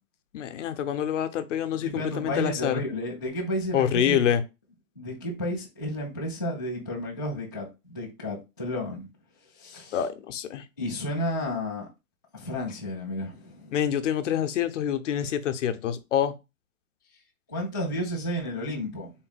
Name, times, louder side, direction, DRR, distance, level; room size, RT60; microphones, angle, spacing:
voice 1, 0.3-2.8 3.7-4.4 9.9-10.6 13.7-16.3, left 9 dB, 60° left, 0.7 m, -26 dB
voice 2, 1.8-4.4 5.0-9.1 9.6-10.0 10.8-11.9 12.3-13.7 17.5-19.1, left 1 dB, 15° left, 0.3 m, -32 dB
3.8 x 2.1 x 4.0 m
hypercardioid pair, 160°, 42 cm